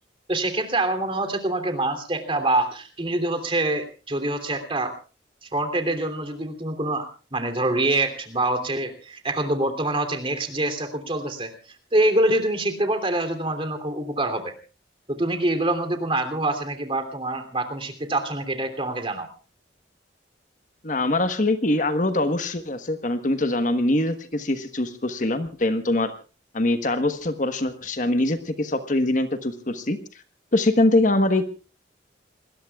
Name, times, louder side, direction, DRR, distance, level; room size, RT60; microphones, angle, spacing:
voice 1, 0.3-4.9 5.4-14.5 15.1-19.3, right 2 dB, 30° right, 7 dB, 3.0 m, -25 dB
voice 2, 20.8-26.1 26.5-30.0 30.5-31.5, left 2 dB, 45° left, 9 dB, 1.3 m, -23 dB
28.0 x 20.5 x 2.4 m, 0.35 s
head